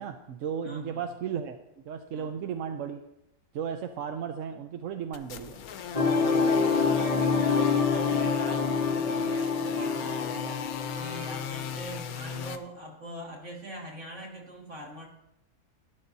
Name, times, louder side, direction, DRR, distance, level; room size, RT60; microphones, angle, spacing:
voice 1, 0.0-1.6 1.8-3.0 3.5-5.6, right 7 dB, 65° right, 6 dB, 0.9 m, -35 dB
voice 2, 0.6-1.0 2.1-2.3 6.4-10.7 11.0-15.1, right 1 dB, 50° right, -2 dB, 2.6 m, -42 dB
sound 1, 5.1-12.6, left 8 dB, 70° left, 1.1 m, -38 dB
sound 2, 5.9-11.8, left 5 dB, 35° left, 0.7 m, -26 dB
13.0 x 11.5 x 2.7 m, 0.84 s
omnidirectional pair, 1.6 m